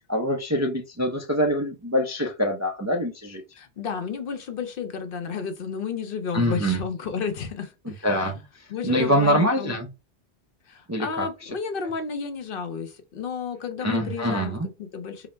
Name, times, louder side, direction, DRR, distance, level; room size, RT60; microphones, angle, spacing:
voice 1, 0.1-3.4 6.3-6.8 7.9-9.9 10.9-11.3 13.8-14.7, equal, 25° right, 0.4 m, -25 dB
voice 2, 3.6-8.3 8.7-9.8 10.7-15.3, left 6 dB, 60° left, 0.8 m, -32 dB
3.9 x 2.0 x 4.2 m
omnidirectional pair, 1.1 m